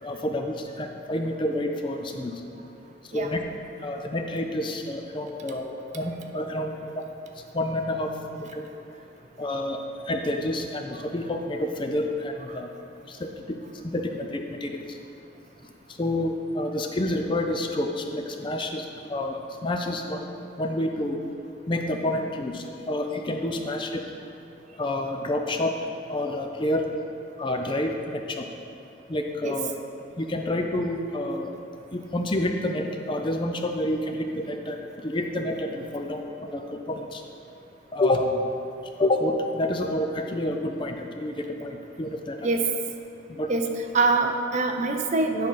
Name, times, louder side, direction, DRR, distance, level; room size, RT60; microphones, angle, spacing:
voice 1, 0.0-2.3 3.1-3.4 3.8-7.1 7.5-8.1 8.4-8.6 9.4-12.7 13.1-13.6 13.8-15.0 16.0-20.3 20.6-21.2 21.7-24.0 24.8-25.8 26.1-26.9 27.4-28.5 29.1-29.7 30.2-31.5 31.9-34.8 35.0-37.2 37.9-38.5 39.0-42.5 43.3-43.5, left 1 dB, 25° left, 4 dB, 0.4 m, -28 dB
voice 2, 43.9-45.5, right 3 dB, 35° right, 4 dB, 0.5 m, -24 dB
9.3 x 3.8 x 5.6 m, 2.7 s
head